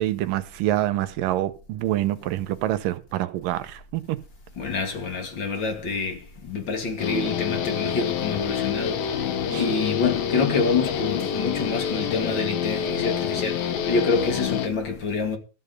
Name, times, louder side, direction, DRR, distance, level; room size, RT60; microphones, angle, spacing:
voice 1, 0.0-4.2 9.5-9.6, right 14 dB, 80° right, 2.4 m, -26 dB
voice 2, 4.6-15.4, left 4 dB, 40° left, 2.2 m, -27 dB
Guitar, 7.0-14.7, left 8 dB, 75° left, 3.1 m, -27 dB
13.5 x 5.3 x 8.0 m
omnidirectional pair, 4.1 m